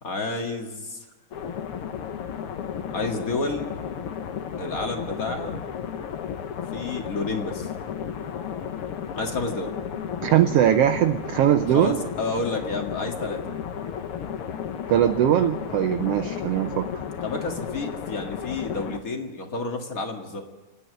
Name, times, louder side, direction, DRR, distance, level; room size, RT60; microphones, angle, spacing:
voice 1, 0.0-1.1 2.9-3.7 4.6-5.6 6.7-7.7 9.2-9.7 11.7-13.4 17.2-20.4, left 3 dB, 35° left, 3 dB, 1.8 m, -30 dB
sound 1, 1.3-19.0, left 8 dB, 60° left, 1.6 m, -33 dB
voice 2, 10.2-12.0 14.9-16.9, right 11 dB, 75° right, 7 dB, 1.4 m, -20 dB
29.0 x 9.8 x 9.2 m, 1.2 s
omnidirectional pair, 3.5 m